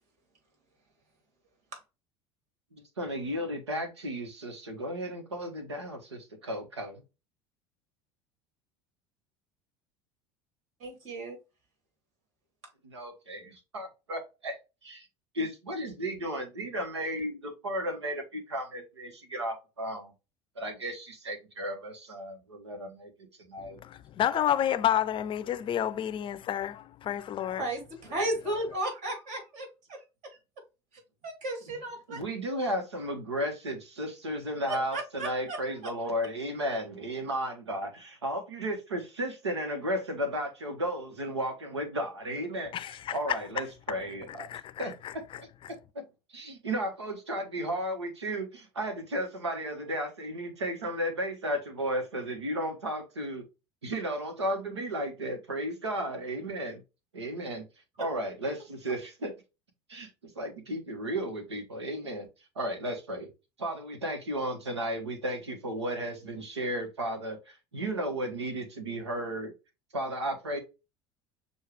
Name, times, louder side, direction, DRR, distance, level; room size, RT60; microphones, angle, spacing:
voice 1, 3.0-7.0 12.8-14.6 14.8-15.1 15.3-20.1 20.6-23.1 23.5-23.8 24.3-24.4 32.1-44.5 44.8-45.5 45.9-46.0 46.3-53.5 53.8-56.8 57.1-57.6 58.0-59.3 59.9-60.1 60.4-62.3 62.5-63.3 63.6-69.5 69.9-70.6, right 1 dB, 90° right, 1.1 m, -34 dB
voice 2, 10.8-11.4 27.6-30.0 31.2-32.2 34.7-35.7, right 1 dB, 60° right, 2.4 m, -34 dB
voice 3, 23.6-27.7 42.7-43.4 44.3-45.1, left 10 dB, 35° left, 0.5 m, -30 dB
6.4 x 2.5 x 3.2 m
hypercardioid pair, 70°, 14 cm